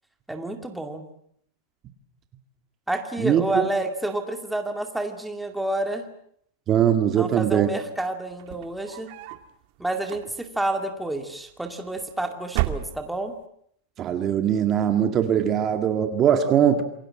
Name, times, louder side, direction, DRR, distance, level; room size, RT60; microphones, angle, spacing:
voice 1, 0.3-1.0 2.9-6.1 7.2-9.1 9.8-13.3, right 1 dB, 5° right, 4 dB, 2.2 m, -29 dB
voice 2, 3.2-3.6 6.7-7.7 14.0-16.8, right 9 dB, 25° right, 6 dB, 1.8 m, -21 dB
sound 1, 8.3-9.5 10.0-10.7 11.6-12.1 12.5-13.4, right 15 dB, 45° right, 2.0 m, -31 dB
28.0 x 23.0 x 7.6 m, 0.69 s
supercardioid pair, 160°, 0 cm